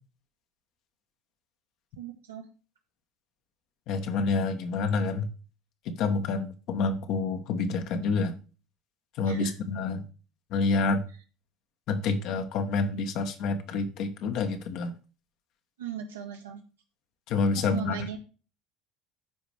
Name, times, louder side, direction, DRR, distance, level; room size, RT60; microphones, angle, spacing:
voice 1, 2.0-2.4 9.3-9.5 15.8-16.6 17.6-18.2, right 8 dB, 80° right, 1.9 m, -37 dB
voice 2, 3.9-5.3 5.9-8.3 9.2-10.0 10.5-11.0 11.9-14.9 17.3-18.0, left 4 dB, 55° left, 1.4 m, -28 dB
14.0 x 5.0 x 3.4 m
figure-of-eight pair, 65°, 0 cm